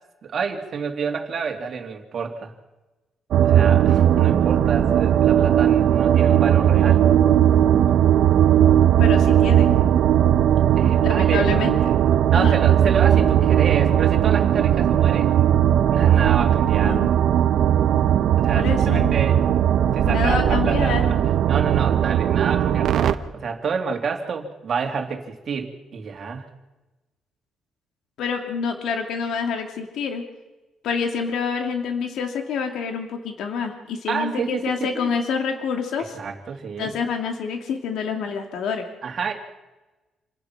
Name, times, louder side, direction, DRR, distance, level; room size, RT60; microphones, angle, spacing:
voice 1, 0.2-2.5 3.4-7.1 10.8-11.5 12.3-15.3 15.9-17.0 18.4-19.4 19.9-21.2 21.5-26.5 34.1-34.7 34.9-35.1 36.1-37.0 39.0-39.3, right 5 dB, 40° right, 3 dB, 2.7 m, -28 dB
sound 1, 3.3-23.1, right 10 dB, 65° right, 1.0 m, -18 dB
voice 2, 9.0-9.7 11.0-11.8 12.3-12.6 16.7-17.1 18.5-19.1 20.1-21.0 28.2-30.2 30.8-36.2 36.8-38.9, left 5 dB, 75° left, 4 dB, 2.5 m, -27 dB
27.5 x 18.5 x 6.0 m, 1.1 s
cardioid pair, 175°, 0 cm